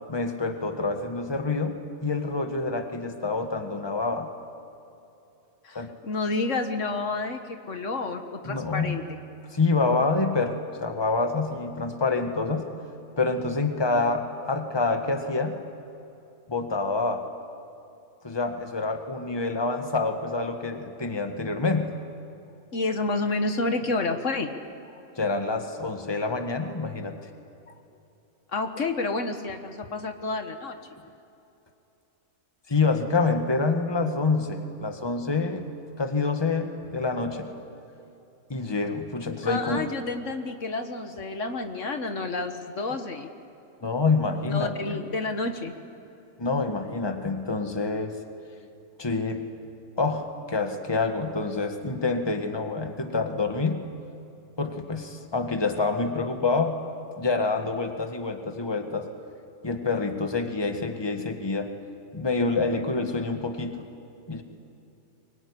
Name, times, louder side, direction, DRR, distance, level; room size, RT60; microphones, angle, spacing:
voice 1, 0.1-4.3 5.7-6.0 8.4-9.0 9.5-12.7 13.2-15.6 16.5-17.3 18.2-22.0 25.1-27.2 32.7-35.6 36.0-37.5 38.5-39.9 43.8-45.0 46.4-48.2 49.0-49.5 50.0-53.9 54.6-56.8 57.2-59.1 59.6-61.7 62.1-63.8 64.3-64.4, left 3 dB, 20° left, 5 dB, 1.6 m, -27 dB
voice 2, 5.6-9.2 22.7-24.5 28.5-30.8 39.4-43.3 44.5-45.7, left 3 dB, 65° left, 6 dB, 1.7 m, -30 dB
24.0 x 22.0 x 9.9 m, 2.9 s
omnidirectional pair, 1.4 m